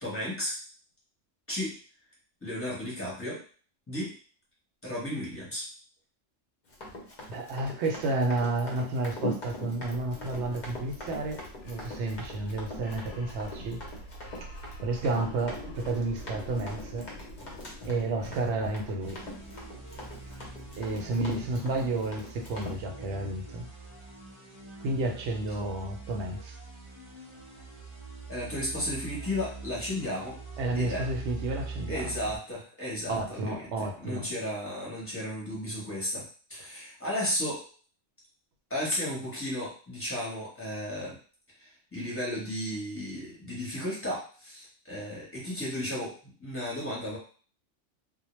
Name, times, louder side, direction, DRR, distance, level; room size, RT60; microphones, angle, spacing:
voice 1, 0.0-0.5 1.5-1.7 2.4-3.4 3.9-4.1 4.8-5.6 28.3-30.4 30.7-31.0 31.9-33.5 34.0-36.2 36.5-37.6 38.7-41.2 41.6-46.1 46.4-47.2, left 1 dB, 10° left, -6 dB, 0.8 m, -34 dB
Run, 6.7-22.8, left 1 dB, 45° left, 0.7 m, -42 dB
voice 2, 7.3-13.8 14.4-14.5 14.8-17.1 17.8-19.3 20.8-23.7 24.8-26.6 30.6-32.2 33.1-34.3, right 2 dB, 70° right, 3 dB, 0.8 m, -31 dB
sound 1, 9.7-22.5, equal, 70° left, 0.9 m, -46 dB
sound 2, 19.0-32.4, right 4 dB, 30° right, 0.6 m, -43 dB
2.1 x 2.1 x 3.0 m, 0.41 s
omnidirectional pair, 1.3 m